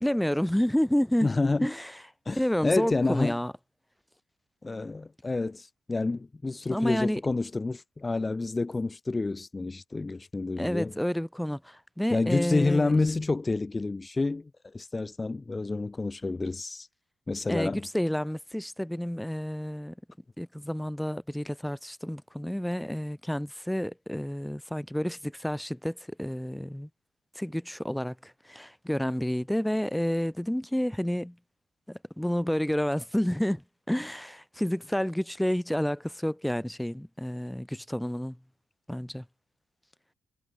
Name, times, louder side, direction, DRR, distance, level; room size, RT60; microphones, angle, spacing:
voice 1, 0.0-1.3 1.6-1.9 2.4-3.5 6.7-7.2 10.6-12.9 17.5-19.9 20.4-26.9 27.3-31.3 31.9-33.6 33.9-38.4 38.9-39.2, equal, 5° left, 1.7 m, -29 dB
voice 2, 1.2-1.7 2.3-3.4 4.6-11.0 12.1-16.9 17.3-17.9, left 3 dB, 20° left, 2.4 m, -29 dB
cardioid pair, 90°, 0 cm